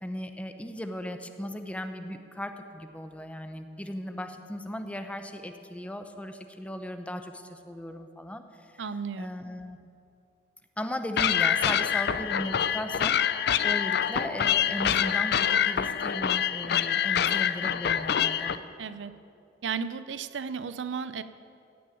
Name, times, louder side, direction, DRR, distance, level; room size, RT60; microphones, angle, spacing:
voice 1, 0.0-8.4 9.2-9.8 10.8-13.2 13.6-18.6, left 1 dB, 5° left, 7 dB, 0.7 m, -37 dB
voice 2, 8.8-9.3 18.8-19.2 19.6-21.2, right 6 dB, 85° right, 13 dB, 0.5 m, -34 dB
sound 1, 11.2-18.6, left 9 dB, 60° left, 0.4 m, -26 dB
16.0 x 6.2 x 9.1 m, 2.6 s
head